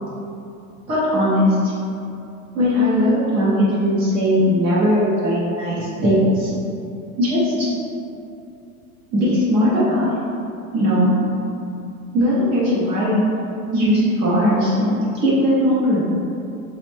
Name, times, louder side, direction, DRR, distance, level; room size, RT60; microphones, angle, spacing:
voice 1, 0.9-1.7 2.5-6.5 7.2-7.7 9.1-10.1 10.7-11.1 12.1-13.2 13.7-16.1, equal, 15° right, -8 dB, 0.3 m, -18 dB
4.2 x 2.0 x 3.1 m, 2.7 s
hypercardioid pair, 135°, 45 cm